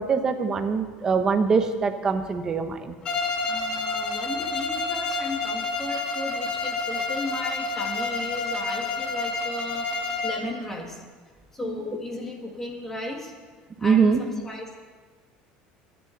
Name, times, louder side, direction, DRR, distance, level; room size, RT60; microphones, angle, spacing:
voice 1, 0.0-3.0 13.8-14.2, right 5 dB, 20° right, 7 dB, 1.0 m, -23 dB
Bowed string instrument, 3.0-10.5, left 3 dB, 30° left, 1.6 m, -29 dB
voice 2, 3.5-11.0 11.5-13.3 13.8-14.8, left 2 dB, 10° left, 1 dB, 2.0 m, -35 dB
26.5 x 10.5 x 4.1 m, 1.4 s
cardioid pair, 170°, 3 cm